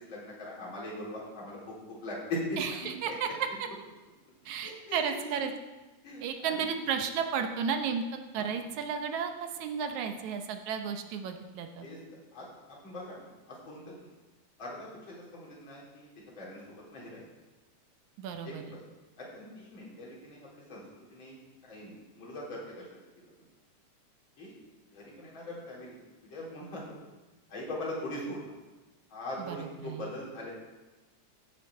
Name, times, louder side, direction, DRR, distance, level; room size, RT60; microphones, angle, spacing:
voice 1, 0.1-1.7 2.0-3.1 4.6-5.4 6.0-6.8 8.4-8.5 11.8-12.0 12.3-14.1 14.6-16.1 16.4-16.6 16.9-17.2 18.4-18.8 19.2-20.8 21.1-21.4 21.6-22.9 23.2-23.3 24.4-24.5 24.9-26.0 26.3-27.0 27.5-28.5 29.1-30.5, left 1 dB, 35° left, -5 dB, 4.2 m, -41 dB
voice 2, 2.6-3.3 4.5-5.5 6.2-8.0 8.3-11.9 18.2-18.6 29.4-30.1, right 7 dB, 70° right, 6 dB, 2.1 m, -33 dB
16.5 x 7.5 x 4.7 m, 1.2 s
omnidirectional pair, 3.7 m